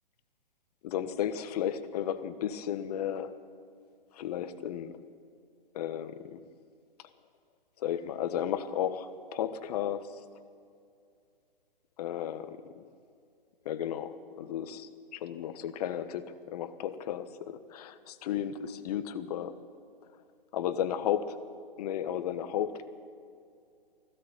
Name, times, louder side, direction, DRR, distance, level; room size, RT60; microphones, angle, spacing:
voice 1, 0.8-3.4 4.1-5.0 5.7-6.4 7.8-10.2 12.0-12.9 13.6-19.5 20.5-21.4 21.8-22.9, left 10 dB, 40° left, 12 dB, 1.3 m, -34 dB
20.0 x 16.0 x 8.2 m, 2.4 s
hypercardioid pair, 135°, 29 cm